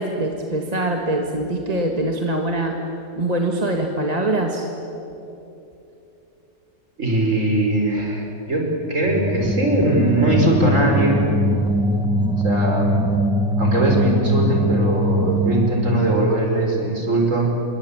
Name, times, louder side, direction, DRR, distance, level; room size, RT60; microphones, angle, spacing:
voice 1, 0.0-2.8 3.2-4.7, right 1 dB, 20° right, 2 dB, 1.9 m, -23 dB
voice 2, 7.0-11.3 12.4-13.0 13.6-17.5, right 1 dB, 45° right, 1 dB, 5.2 m, -20 dB
sound 1, 9.0-16.4, equal, 5° right, 0.8 m, -21 dB
27.0 x 22.5 x 8.9 m, 2.9 s
omnidirectional pair, 1.9 m